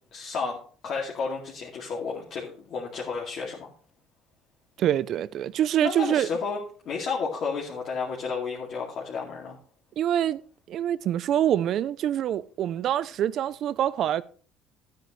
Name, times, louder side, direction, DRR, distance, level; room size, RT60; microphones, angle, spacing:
voice 1, 0.1-3.7 5.8-6.6 6.8-9.6, left 5 dB, 50° left, 2.4 m, -32 dB
voice 2, 4.8-6.3 10.0-10.4 10.7-14.2, right 11 dB, 50° right, 0.5 m, -25 dB
13.0 x 9.2 x 3.2 m
cardioid pair, 135°, 0 cm